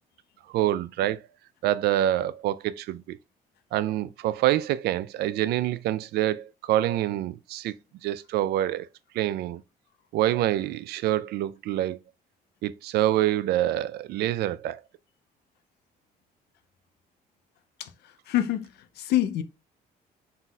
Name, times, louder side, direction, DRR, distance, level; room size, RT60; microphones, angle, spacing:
voice 1, 0.5-1.2 1.6-3.2 3.7-7.7 8.0-8.9 9.1-9.6 10.1-12.0 12.6-14.8, right 13 dB, 70° right, 0.4 m, -26 dB
voice 2, 18.3-18.7 19.0-19.4, left 13 dB, 75° left, 0.6 m, -25 dB
4.0 x 4.0 x 2.3 m
cardioid pair, 110°, 17 cm